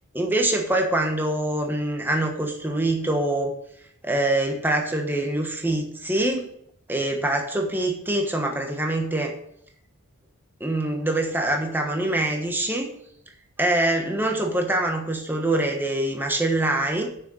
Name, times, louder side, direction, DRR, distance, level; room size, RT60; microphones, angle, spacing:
voice 1, 0.1-3.5 4.0-6.5 6.9-9.3 10.6-12.9 13.6-17.1, right 1 dB, 10° right, 2 dB, 1.2 m, -24 dB
6.8 x 6.3 x 6.3 m, 0.71 s
head